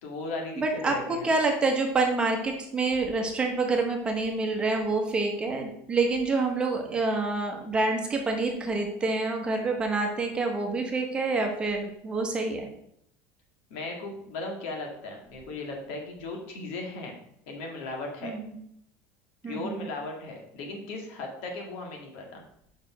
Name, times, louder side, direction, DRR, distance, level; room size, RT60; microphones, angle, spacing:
voice 1, 0.0-1.2 13.7-17.2 17.5-18.3 19.4-22.4, left 2 dB, 70° left, 1 dB, 2.2 m, -37 dB
voice 2, 0.6-12.7 18.2-18.5 19.4-19.9, right 3 dB, 15° right, 2 dB, 1.0 m, -27 dB
5.3 x 4.9 x 6.0 m, 0.73 s
cardioid pair, 165°, 7 cm